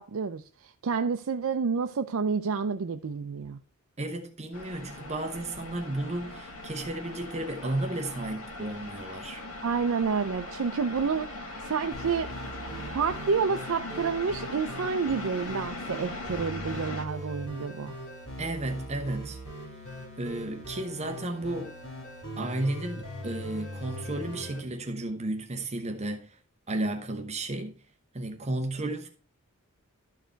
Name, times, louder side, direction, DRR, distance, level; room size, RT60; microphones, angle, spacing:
voice 1, 0.0-3.6 9.6-12.3 12.6-17.9, right 5 dB, 70° right, 0.5 m, -29 dB
voice 2, 4.0-9.4 18.4-19.4 20.2-21.7 22.4-26.4 26.7-27.7 28.1-29.1, right 2 dB, 30° right, 0.9 m, -33 dB
sound 1, 4.5-17.1, left 2 dB, 90° left, 1.8 m, -40 dB
sound 2, 11.9-24.6, equal, 65° left, 4.5 m, -41 dB
12.5 x 4.7 x 4.5 m
head